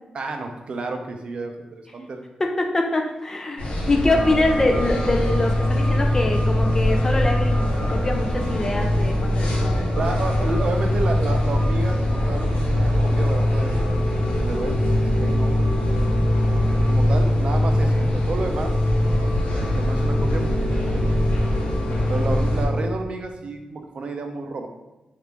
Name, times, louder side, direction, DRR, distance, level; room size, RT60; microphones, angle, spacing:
voice 1, 0.1-2.2 10.0-15.7 16.9-18.8 19.8-21.2 22.1-24.7, right 3 dB, 50° right, 5 dB, 0.4 m, -31 dB
voice 2, 2.4-9.9, left 2 dB, 20° left, 2 dB, 0.4 m, -24 dB
sound 1, 3.6-22.7, left 1 dB, 65° left, 0.8 m, -26 dB
sound 2, 4.1-22.9, left 1 dB, 5° left, 1.4 m, -23 dB
3.0 x 2.4 x 3.3 m, 1.0 s
wide cardioid pair, 165°, 2 cm